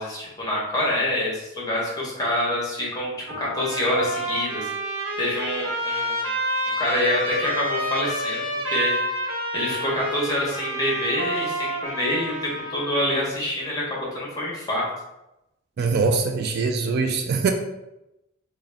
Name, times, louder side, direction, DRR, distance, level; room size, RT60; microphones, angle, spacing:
voice 1, 0.0-4.7 5.2-6.2 6.8-8.4 8.7-9.0 9.5-14.9, left 1 dB, 20° left, -4 dB, 1.0 m, -26 dB
Trumpet, 3.3-13.0, equal, 85° right, 0.9 m, -29 dB
voice 2, 15.8-17.5, right 4 dB, 50° right, 5 dB, 0.3 m, -22 dB
3.7 x 2.2 x 3.4 m, 0.92 s
head